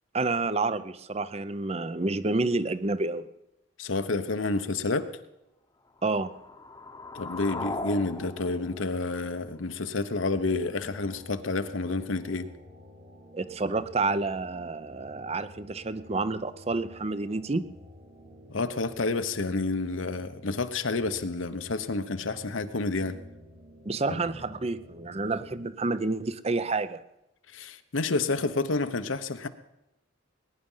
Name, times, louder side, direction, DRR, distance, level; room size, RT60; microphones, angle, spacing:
voice 1, 0.1-3.3 6.0-6.3 13.3-17.7 23.9-27.0, right 3 dB, 30° right, 0.6 m, -29 dB
voice 2, 3.8-5.1 7.1-12.5 18.5-23.2 24.1-24.2 27.5-29.5, left 3 dB, 80° left, 1.0 m, -29 dB
sound 1, 6.0-10.0, left 2 dB, 20° left, 0.9 m, -39 dB
sound 2, 10.3-25.6, equal, 75° right, 3.3 m, -51 dB
20.0 x 10.0 x 5.6 m
head